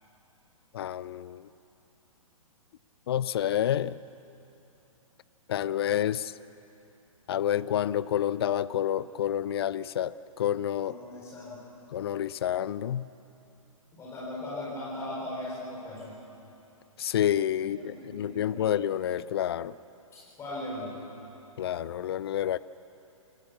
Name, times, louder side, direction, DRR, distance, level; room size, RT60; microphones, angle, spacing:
voice 1, 0.7-1.4 3.1-4.0 5.5-6.3 7.3-10.1 10.4-11.0 11.9-13.1 17.0-19.7 21.6-22.6, left 10 dB, 45° left, 18 dB, 0.5 m, -28 dB
voice 2, 10.8-11.6 13.9-16.1 17.6-18.7 20.1-21.0, left 1 dB, 15° left, -6 dB, 4.7 m, -39 dB
27.5 x 15.0 x 7.1 m, 2.9 s
figure-of-eight pair, 125°, 18 cm